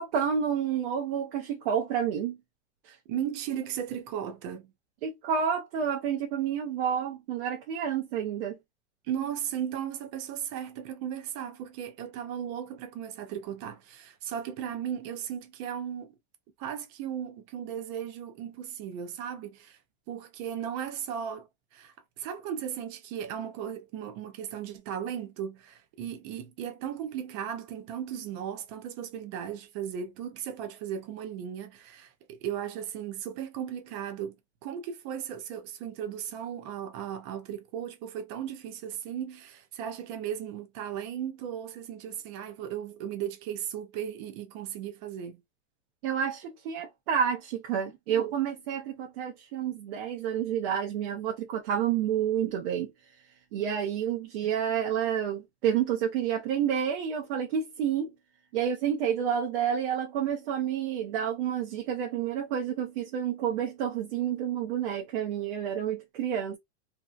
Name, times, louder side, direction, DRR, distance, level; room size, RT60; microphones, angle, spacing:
voice 1, 0.0-2.4 5.0-8.6 46.0-52.9 53.5-58.1 58.5-66.6, right 8 dB, 55° right, 0.7 m, -29 dB
voice 2, 2.9-4.7 9.0-16.1 16.6-19.8 20.1-45.4, right 9 dB, 25° right, 0.3 m, -36 dB
2.7 x 2.1 x 2.4 m
supercardioid pair, 150°, 35 cm